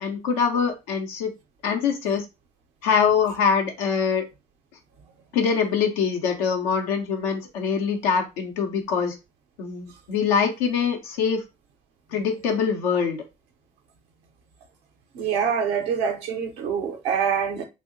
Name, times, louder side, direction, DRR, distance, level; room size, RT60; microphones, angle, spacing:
voice 1, 0.0-1.3 1.6-2.3 2.8-4.3 5.3-9.2 9.6-11.4 12.1-13.2, left 6 dB, 85° left, 0.6 m, -24 dB
voice 2, 15.1-17.6, right 7 dB, 80° right, 0.6 m, -25 dB
2.7 x 2.0 x 3.7 m
hypercardioid pair, 45°, 18 cm